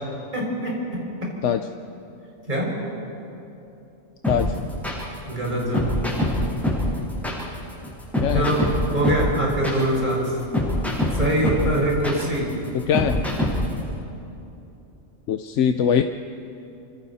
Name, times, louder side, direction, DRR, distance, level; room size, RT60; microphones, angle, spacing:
voice 1, 0.3-0.7 2.5-2.7 5.3-6.0 8.3-8.6 8.9-10.3 11.1-12.5, right 1 dB, 35° right, -4 dB, 5.6 m, -23 dB
sound 1, 4.2-13.8, left 1 dB, ahead, 7.5 m, -24 dB
voice 2, 8.2-8.6 12.7-13.2 15.3-16.0, left 8 dB, 70° left, 8 dB, 1.0 m, -22 dB
29.0 x 25.5 x 4.2 m, 2.8 s
omnidirectional pair, 1.3 m